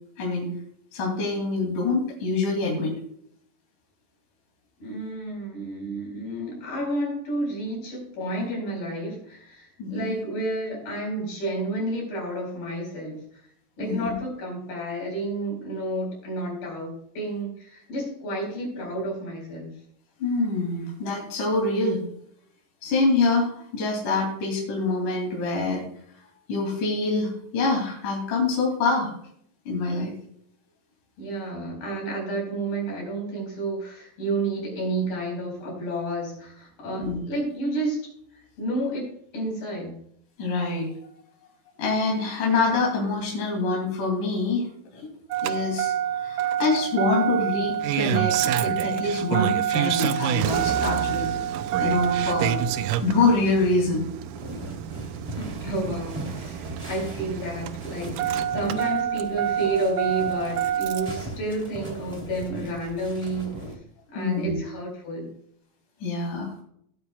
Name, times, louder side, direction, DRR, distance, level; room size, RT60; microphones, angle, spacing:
voice 1, 0.2-0.5 0.9-2.9 9.8-10.1 13.8-14.1 20.2-22.0 22.8-25.8 26.5-29.1 29.7-30.1 37.0-37.2 40.4-40.9 41.8-44.7 45.4-45.9 46.2-51.3 51.8-52.6 53.0-54.0 64.2-64.6 66.0-66.5, left 3 dB, 60° left, -2 dB, 4.3 m, -25 dB
voice 2, 4.8-13.2 13.8-19.7 31.2-38.1 38.3-39.9 55.3-63.7 64.1-65.3, right 1 dB, 85° left, -2 dB, 6.6 m, -31 dB
Engine starting, 45.3-61.2 62.5-62.6, right 10 dB, 80° right, 2.0 m, -27 dB
sound 1, 54.4-63.7, equal, 10° right, 2.2 m, -39 dB
18.5 x 8.5 x 2.3 m, 0.67 s
omnidirectional pair, 4.0 m